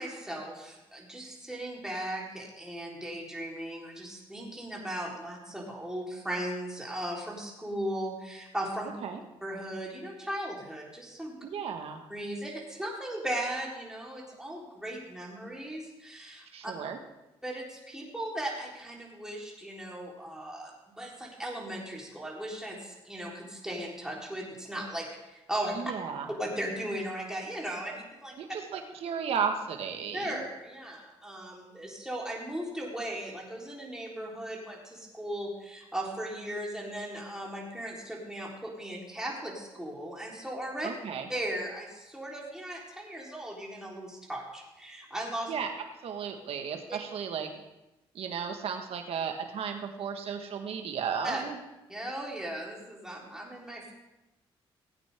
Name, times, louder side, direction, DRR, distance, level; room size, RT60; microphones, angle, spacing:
voice 1, 0.0-8.9 9.4-11.4 12.1-16.7 17.4-25.8 26.4-28.3 30.1-40.9 41.3-45.5 46.9-47.0 51.2-51.4 51.9-53.9, right 1 dB, 5° right, -3 dB, 3.9 m, -37 dB
voice 2, 11.4-12.0 16.5-17.0 25.7-26.3 28.4-30.4 40.8-41.3 45.5-45.7 46.0-47.5 48.1-51.6, right 7 dB, 70° right, 5 dB, 1.6 m, -34 dB
17.0 x 8.7 x 3.7 m, 0.97 s
cardioid pair, 85°, 10 cm